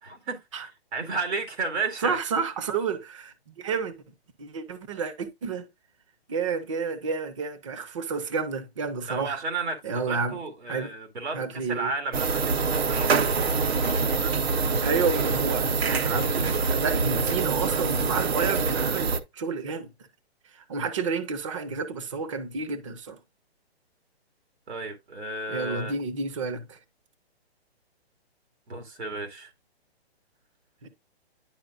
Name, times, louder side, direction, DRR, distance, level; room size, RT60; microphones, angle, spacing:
voice 1, 0.0-2.2 9.1-13.4 14.2-14.5 24.7-25.9 28.7-29.5, right 3 dB, 90° right, 2.3 m, -33 dB
voice 2, 2.0-3.9 4.4-5.7 6.3-9.4 9.8-10.4 10.7-10.9 11.3-11.9 14.8-19.9 20.7-23.2 25.5-26.8 30.8-30.9, right 5 dB, 30° right, 0.8 m, -30 dB
sound 1, 12.1-19.2, right 4 dB, 70° right, 1.0 m, -25 dB
10.5 x 4.7 x 2.4 m
hypercardioid pair, 170°, 32 cm